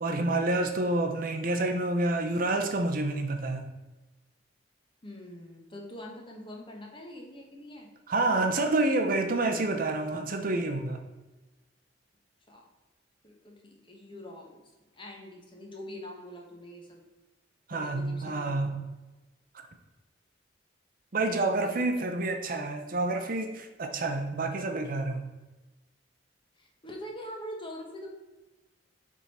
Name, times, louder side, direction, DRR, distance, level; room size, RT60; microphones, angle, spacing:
voice 1, 0.0-3.6 8.1-11.0 17.7-18.7 21.1-25.3, right 2 dB, 50° right, 5 dB, 0.6 m, -28 dB
voice 2, 5.0-7.9 12.5-12.7 13.2-14.6 14.9-17.0 17.7-18.6 21.6-21.9 26.6-28.1, equal, 25° left, 0 dB, 1.1 m, -44 dB
7.1 x 3.7 x 4.2 m, 1.1 s
head